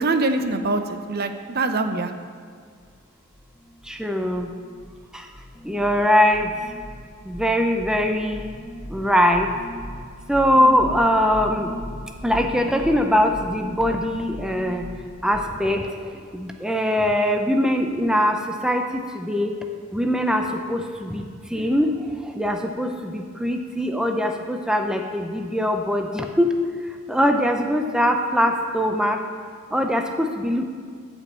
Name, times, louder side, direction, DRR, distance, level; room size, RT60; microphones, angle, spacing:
voice 1, 0.0-2.1, right 3 dB, 50° right, 7 dB, 0.7 m, -24 dB
sound 1, 2.8-3.0 3.3-4.1 4.3-5.1 5.3-15.6, equal, 20° left, 1.4 m, -38 dB
voice 2, 3.8-4.5 5.1-5.3 5.6-6.5 7.2-8.5 8.9-9.5 10.3-11.7 12.2-14.9 15.2-19.5 19.9-26.5 26.8-29.2 29.7-30.7, equal, 5° right, 3 dB, 0.6 m, -22 dB
13.0 x 5.3 x 7.5 m, 2.1 s
head